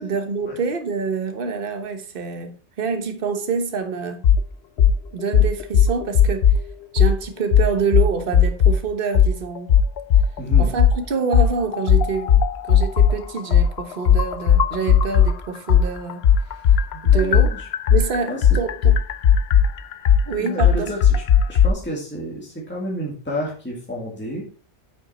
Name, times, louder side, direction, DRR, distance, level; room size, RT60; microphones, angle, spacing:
voice 1, 0.0-4.2 5.1-6.5 6.9-9.7 10.6-16.2 17.0-17.5 17.9-19.0 20.3-20.9, right 5 dB, 50° right, 1.3 m, -26 dB
sound 1, 4.2-4.4 4.8-5.0 5.3-6.6 7.0-7.1 7.5-8.8 9.1-9.3 9.7-11.0 11.3-15.3 15.7-21.7, left 8 dB, 65° left, 0.8 m, -15 dB
voice 2, 10.4-10.7 17.1-17.7 18.3-18.6 20.4-21.2 21.5-24.5, equal, 10° left, 2.1 m, -31 dB
9.1 x 6.2 x 4.2 m
omnidirectional pair, 1.2 m